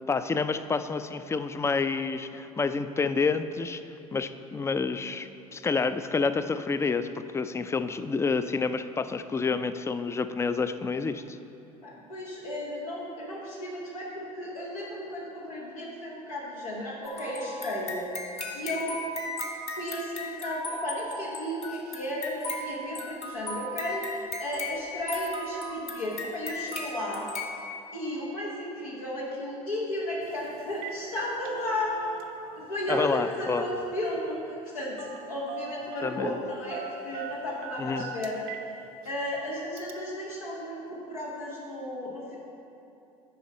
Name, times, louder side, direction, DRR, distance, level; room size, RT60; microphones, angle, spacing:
voice 1, 0.1-3.8 4.1-11.4 32.9-33.6 36.0-36.4 37.8-38.1, left 4 dB, 15° left, 11 dB, 0.3 m, -29 dB
voice 2, 11.8-18.1 18.5-19.0 19.7-27.3 27.9-31.9 32.5-38.5 39.0-42.4, left 1 dB, 85° left, -5 dB, 1.2 m, -34 dB
sound 1, 17.0-27.6, left 2 dB, 35° left, 1.2 m, -37 dB
Telephone, 30.2-30.4 30.7-31.0 31.3-32.6 32.9-33.8 35.0-35.2 35.5-36.2 36.7-38.7 39.1-39.2 39.8-39.9, right 8 dB, 75° right, 0.6 m, -39 dB
9.1 x 5.3 x 4.3 m, 2.8 s
hypercardioid pair, 70°, 18 cm